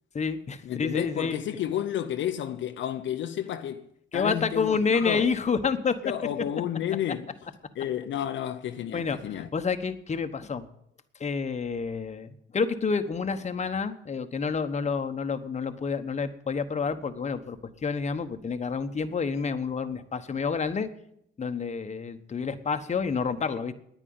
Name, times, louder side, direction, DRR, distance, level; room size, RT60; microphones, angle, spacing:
voice 1, 0.1-1.4 4.1-6.0 8.9-10.7 11.2-20.9 21.4-23.7, left 5 dB, 35° left, 1.2 m, -29 dB
voice 2, 0.7-3.8 4.1-5.2 6.0-7.2 7.8-9.5, left 10 dB, 70° left, 0.7 m, -31 dB
10.0 x 9.2 x 9.5 m
cardioid pair, 90°, 20 cm